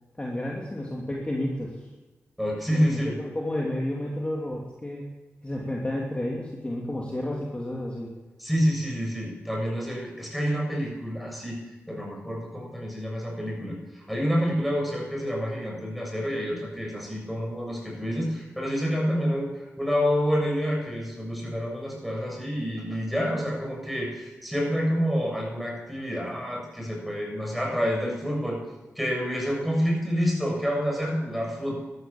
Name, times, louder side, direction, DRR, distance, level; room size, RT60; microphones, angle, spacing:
voice 1, 0.2-1.8 2.7-5.1 5.4-8.1, left 1 dB, 20° left, -3 dB, 2.9 m, -31 dB
voice 2, 2.4-3.2 8.4-11.6 11.9-28.6 29.0-31.8, equal, ahead, -1 dB, 7.2 m, -28 dB
13.5 x 12.5 x 7.3 m, 1.2 s
cardioid pair, 60°, 5 cm